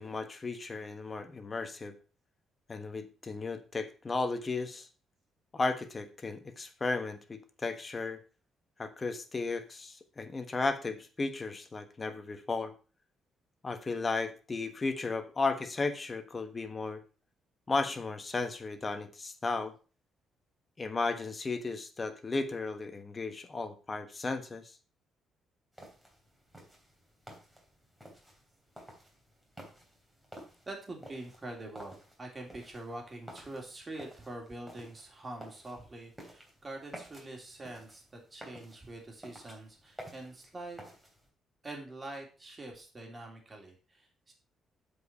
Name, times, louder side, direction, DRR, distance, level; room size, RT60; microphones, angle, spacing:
voice 1, 0.0-1.9 2.7-4.9 5.5-8.2 8.8-12.7 13.6-17.0 17.7-19.7 20.8-24.7, left 3 dB, 30° left, 9 dB, 1.3 m, -34 dB
sound 1, 25.7-41.3, right 1 dB, 5° right, 3.0 m, -53 dB
voice 2, 30.7-40.8 41.6-44.3, right 2 dB, 25° right, 1 dB, 3.1 m, -45 dB
7.8 x 5.1 x 5.5 m, 0.36 s
cardioid pair, 90°, 0 cm